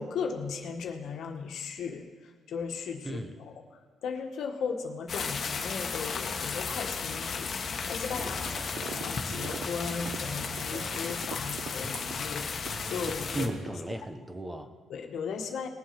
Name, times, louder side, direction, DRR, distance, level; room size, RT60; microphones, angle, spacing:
voice 1, 0.0-2.1 2.5-3.5 4.0-8.5 8.8-13.5 14.9-15.7, left 5 dB, 70° left, 4 dB, 1.5 m, -36 dB
voice 2, 3.0-3.4 8.2-9.1 13.3-14.7, right 1 dB, 10° right, 8 dB, 1.1 m, -37 dB
sound 1, 5.1-13.5, left 5 dB, 50° left, 1.4 m, -34 dB
sound 2, 6.2-13.9, right 4 dB, 40° right, 0.8 m, -46 dB
sound 3, 8.8-9.1 9.3-13.1 13.5-14.4, right 9 dB, 70° right, 0.5 m, -42 dB
20.0 x 7.3 x 5.9 m, 1.5 s
cardioid pair, 90°, 0 cm